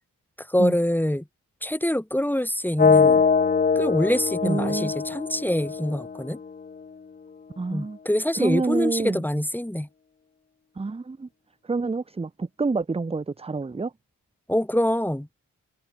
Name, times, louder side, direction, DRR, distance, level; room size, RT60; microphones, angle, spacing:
voice 1, 0.5-1.2 1.6-3.2 3.8-6.4 7.7-9.9 14.5-15.3, left 1 dB, 5° left, 1.8 m, -25 dB
sound 1, 2.8-6.7, left 5 dB, 25° left, 0.5 m, -22 dB
voice 2, 4.4-4.9 7.6-8.0 8.4-9.2 10.8-11.3 11.7-13.9, right 3 dB, 15° right, 0.6 m, -27 dB
cardioid pair, 45°, 34 cm